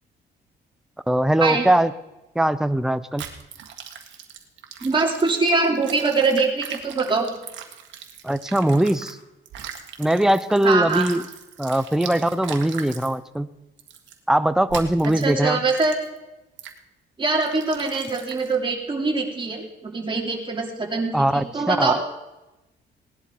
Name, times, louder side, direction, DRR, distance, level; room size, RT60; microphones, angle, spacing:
voice 1, 1.1-1.9 2.3-3.2 8.2-9.2 10.0-11.2 11.6-13.5 14.3-15.6 21.1-21.9, right 1 dB, 5° right, 12 dB, 0.6 m, -21 dB
sound 1, 3.2-9.1 9.4-13.1 13.8-14.1 14.7-15.3 15.7-16.2 16.6-16.8 17.3-18.5, right 8 dB, 80° right, 1.7 m, -39 dB
voice 2, 4.8-7.3 10.6-11.1 15.0-16.0 17.2-22.1, right 3 dB, 25° right, 0 dB, 2.9 m, -23 dB
18.0 x 11.0 x 4.7 m, 0.98 s
cardioid pair, 115°, 19 cm